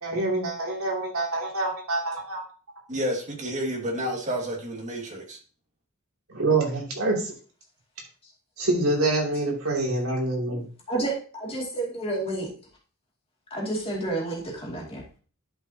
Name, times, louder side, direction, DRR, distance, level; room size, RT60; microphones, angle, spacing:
voice 1, 0.0-2.4 6.3-7.3 8.6-10.6, right 2 dB, 85° right, -2 dB, 2.8 m, -26 dB
voice 2, 2.9-5.4, equal, 35° right, 0 dB, 2.0 m, -30 dB
voice 3, 10.9-12.5 13.5-15.2, right 2 dB, 25° left, -2 dB, 2.4 m, -30 dB
11.5 x 5.4 x 2.8 m, 0.39 s
head